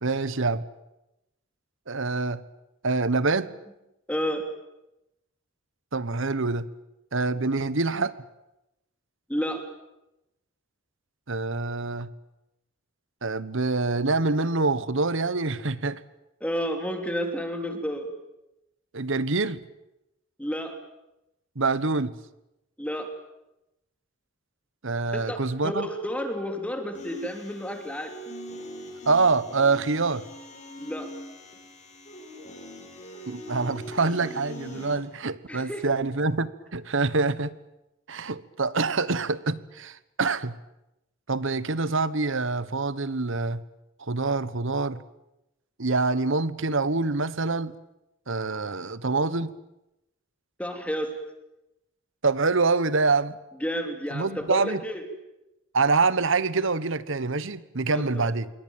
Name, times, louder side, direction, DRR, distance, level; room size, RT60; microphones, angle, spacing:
voice 1, 0.0-0.6 1.9-2.4 2.8-3.5 5.9-6.7 7.1-8.1 11.3-12.1 13.2-16.0 18.9-19.6 21.5-22.1 24.8-25.9 29.1-30.2 33.3-37.5 38.1-40.6 41.3-43.6 44.0-45.0 45.8-47.7 48.3-49.5 52.2-53.4 54.1-54.8 55.7-58.5, right 3 dB, 65° right, 16 dB, 1.3 m, -25 dB
voice 2, 4.1-4.4 9.3-9.6 16.4-18.1 20.4-20.8 22.8-23.1 25.1-28.1 30.8-31.1 35.5-35.9 50.6-51.1 53.6-55.0 57.9-58.3, equal, 5° left, 5 dB, 3.1 m, -31 dB
sound 1, 26.9-35.0, equal, 35° left, 6.7 m, -42 dB
27.0 x 23.5 x 9.1 m, 0.92 s
head